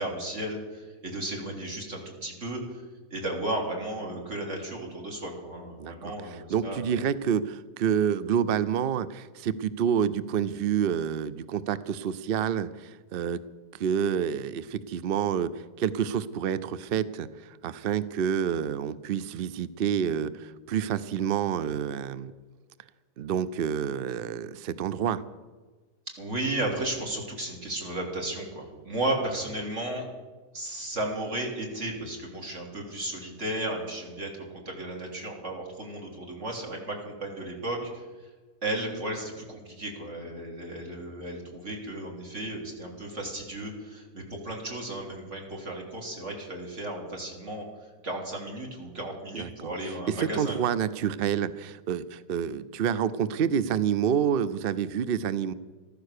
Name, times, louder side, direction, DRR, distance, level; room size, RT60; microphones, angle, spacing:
voice 1, 0.0-2.8 3.1-6.9 26.2-30.0 30.5-34.3 34.7-38.1 38.6-47.7 48.0-50.6, right 1 dB, 45° right, 0 dB, 3.5 m, -34 dB
voice 2, 5.8-13.4 13.7-15.5 15.8-22.3 23.2-25.2 49.3-49.5 50.2-55.5, right 8 dB, 75° right, 16 dB, 0.5 m, -28 dB
14.5 x 14.0 x 6.6 m, 1.3 s
omnidirectional pair, 1.7 m